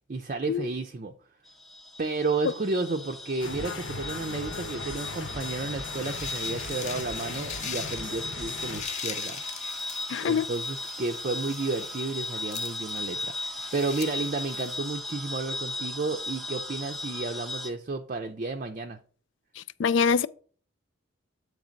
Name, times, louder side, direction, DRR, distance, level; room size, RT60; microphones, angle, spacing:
voice 1, 0.1-1.1 2.0-9.4 10.2-19.0, right 3 dB, 40° right, 0.5 m, -32 dB
sound 1, 1.5-17.7, left 2 dB, ahead, 0.6 m, -37 dB
sound 2, 3.4-8.8, left 3 dB, 85° left, 1.3 m, -38 dB
sound 3, 5.5-15.0, left 8 dB, 35° left, 0.7 m, -42 dB
voice 2, 10.1-10.4 19.8-20.3, left 6 dB, 70° left, 0.4 m, -24 dB
8.6 x 3.3 x 5.1 m
head